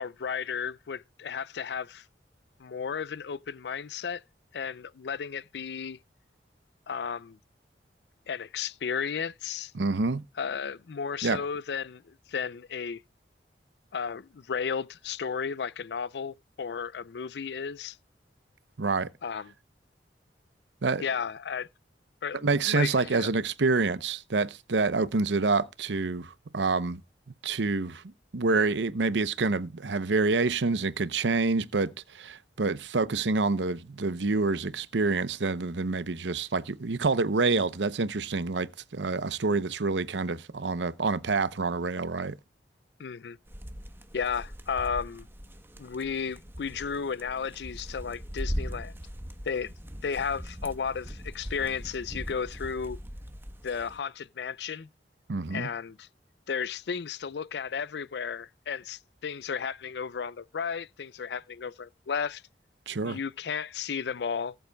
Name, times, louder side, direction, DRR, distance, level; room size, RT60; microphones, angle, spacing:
voice 1, 0.0-2.0 2.6-4.2 4.5-6.0 6.9-7.4 8.3-9.7 10.4-13.0 13.9-18.0 19.2-19.5 21.0-21.7 22.2-23.3 43.0-43.4 44.1-45.3 45.8-48.9 49.5-49.7 50.0-53.0 53.6-54.9 55.5-56.1 56.5-62.4 63.0-64.6, left 6 dB, 65° left, 0.4 m, -34 dB
voice 2, 9.7-10.2 11.2-11.4 18.8-19.1 20.8-21.0 22.4-27.0 27.4-28.0 28.3-42.4 55.3-55.7 62.9-63.2, right 3 dB, 90° right, 0.8 m, -27 dB
sound 1, 43.5-54.0, equal, 15° right, 1.1 m, -40 dB
19.0 x 7.9 x 2.3 m
head